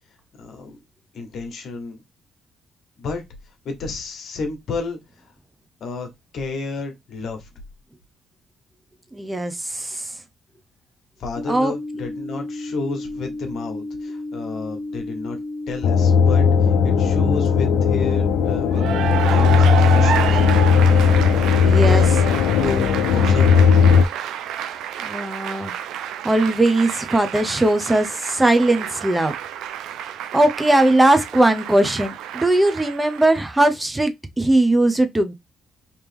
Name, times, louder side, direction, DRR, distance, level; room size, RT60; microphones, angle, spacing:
voice 1, 0.4-0.8 1.1-2.0 3.0-3.2 3.6-5.0 5.8-6.1 6.3-7.4 11.2-15.4 15.7-16.5 16.8-18.9 19.3-20.4 21.9-23.7, left 4 dB, 65° left, 1.2 m, -31 dB
voice 2, 9.1-10.0 11.5-11.7 21.6-22.0 25.0-25.7 26.2-29.3 30.3-35.3, right 1 dB, 15° right, 0.7 m, -19 dB
sound 1, 11.4-21.4, left 2 dB, 35° left, 1.0 m, -32 dB
sound 2, 15.8-24.1, left 6 dB, 85° left, 0.4 m, -16 dB
Cheering / Applause, 18.7-33.6, right 10 dB, 85° right, 0.4 m, -29 dB
3.4 x 2.9 x 3.4 m
cardioid pair, 90°, 0 cm